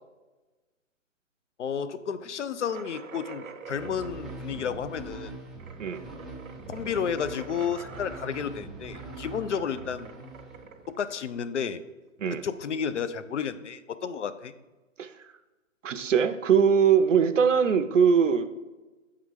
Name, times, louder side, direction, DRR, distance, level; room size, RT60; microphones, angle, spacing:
voice 1, 1.6-5.3 6.7-10.1 10.9-11.8 12.3-14.5, left 7 dB, 60° left, 13 dB, 0.5 m, -32 dB
sound 1, 2.6-12.0, right 5 dB, 85° right, 1.0 m, -46 dB
sound 2, 3.7-11.1, right 3 dB, ahead, 0.3 m, -43 dB
voice 2, 15.8-18.5, right 7 dB, 65° right, 10 dB, 0.7 m, -21 dB
8.2 x 3.9 x 4.7 m, 1.2 s
hypercardioid pair, 170°, 40 cm